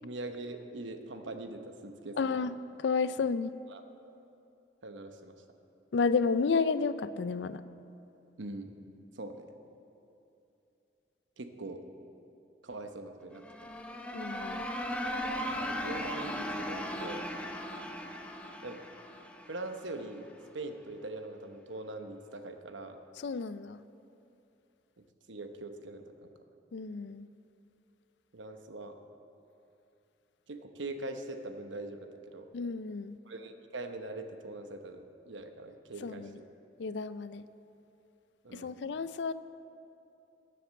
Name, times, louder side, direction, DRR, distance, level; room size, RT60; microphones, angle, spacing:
voice 1, 0.0-2.4 3.7-3.8 4.8-5.4 8.4-8.7 9.1-9.5 11.4-11.8 12.6-13.7 15.6-17.3 18.6-18.8 19.5-20.3 20.5-23.0 25.3-26.3 28.3-29.0 30.5-32.5 33.3-36.4 38.4-38.7, right 2 dB, 90° right, 6 dB, 0.9 m, -42 dB
voice 2, 2.2-2.5 2.8-3.5 5.9-7.6 14.1-14.7 23.2-23.8 26.7-27.3 32.5-33.2 36.0-36.3 36.8-37.4 38.5-39.3, left 5 dB, 70° left, 14 dB, 0.4 m, -31 dB
sound 1, 13.3-20.1, equal, 5° left, 0.7 m, -37 dB
14.5 x 7.8 x 6.4 m, 2.7 s
head